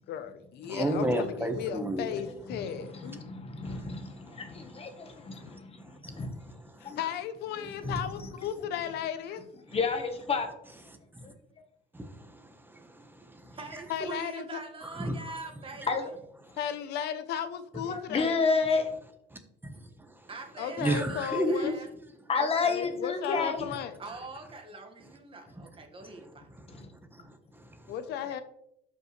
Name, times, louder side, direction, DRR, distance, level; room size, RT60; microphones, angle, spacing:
voice 1, 0.1-3.3 6.8-9.4 13.9-14.6 16.6-18.4 20.6-21.7 22.4-23.9 27.9-28.4, left 9 dB, 80° left, 11 dB, 0.8 m, -35 dB
voice 2, 0.7-2.0 3.6-4.6 5.3-6.7 11.9-13.8 14.8-15.2 19.6-19.8 20.8-21.8 25.5-25.6 26.0-26.7 27.1-27.8, right 1 dB, 10° right, 6 dB, 1.1 m, -34 dB
voice 3, 2.6-6.3 6.8-7.0 7.8-8.0 9.7-10.5 11.2-11.3 15.9-16.1 17.9-18.9 22.3-23.6 26.7-26.9, left 4 dB, 35° left, 6 dB, 1.3 m, -30 dB
voice 4, 13.5-15.9 20.3-21.9 24.0-26.5, right 3 dB, 30° right, 3 dB, 1.7 m, -43 dB
12.0 x 5.5 x 3.2 m, 0.77 s
cardioid pair, 110°, 17 cm